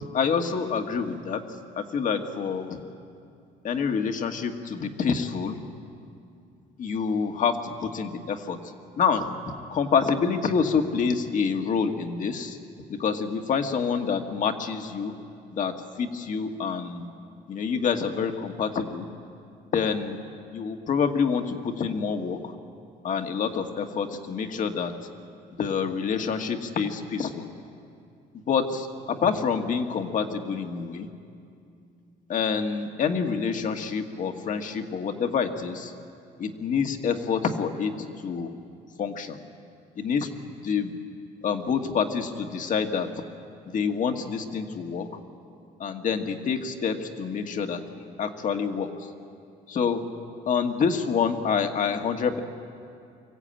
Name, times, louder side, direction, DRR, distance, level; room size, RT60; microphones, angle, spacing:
voice 1, 0.1-1.4 1.8-2.8 3.6-5.6 6.8-8.6 9.0-9.3 9.7-12.6 12.9-15.1 15.5-17.1 17.5-19.1 19.7-20.2 20.5-22.5 23.0-24.9 25.6-27.5 28.5-31.1 32.3-35.9 36.4-38.5 39.0-39.4 40.0-40.3 40.6-40.9 41.4-43.1 43.7-45.1 45.8-48.9 49.7-50.0 50.5-52.4, left 6 dB, 50° left, 5 dB, 1.7 m, -27 dB
24.5 x 15.0 x 8.9 m, 2.5 s
cardioid pair, 110°, 17 cm